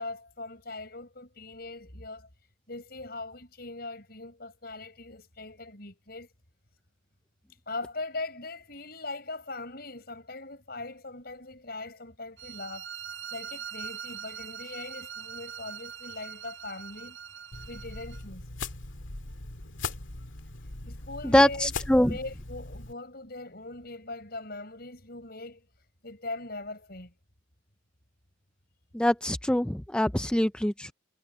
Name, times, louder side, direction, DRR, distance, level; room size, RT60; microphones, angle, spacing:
voice 1, 0.0-2.3 2.7-6.3 7.7-12.9 13.3-17.2 17.7-18.5 20.9-25.7 26.0-27.1, left 2 dB, 50° left, 6.4 m, -40 dB
sound 1, 12.4-18.2, right 8 dB, 80° right, 5.6 m, -42 dB
sound 2, 17.5-22.9, left 3 dB, 80° left, 2.0 m, -40 dB
voice 2, 21.3-22.1 28.9-30.9, left 1 dB, 5° left, 0.3 m, -23 dB
head